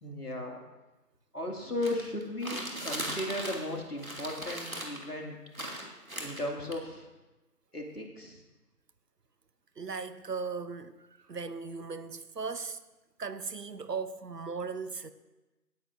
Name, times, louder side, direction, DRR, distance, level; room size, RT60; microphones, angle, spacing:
voice 1, 0.0-0.6 1.3-5.4 6.2-7.1 7.7-8.4, left 1 dB, 70° left, 2.5 m, -36 dB
sound 1, 1.8-3.7 4.0-5.0 5.5-6.7, right 1 dB, 60° right, 2.2 m, -38 dB
voice 2, 9.8-12.8 13.2-15.1, right 5 dB, 85° right, 0.9 m, -37 dB
17.5 x 9.4 x 2.6 m
figure-of-eight pair, 180°, 47 cm